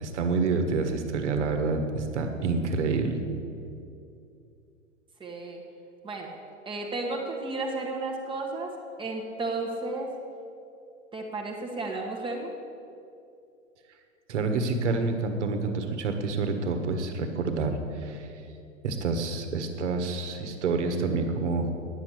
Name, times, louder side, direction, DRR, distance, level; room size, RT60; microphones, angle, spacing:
voice 1, 0.0-3.2 14.3-18.3 18.8-21.7, right 4 dB, 60° right, 6 dB, 1.5 m, -28 dB
voice 2, 5.2-5.6 6.0-6.3 6.6-8.7 9.0-10.1 11.1-12.5, right 2 dB, 15° right, -1 dB, 1.3 m, -33 dB
10.0 x 7.3 x 8.3 m, 2.6 s
figure-of-eight pair, 105°, 39 cm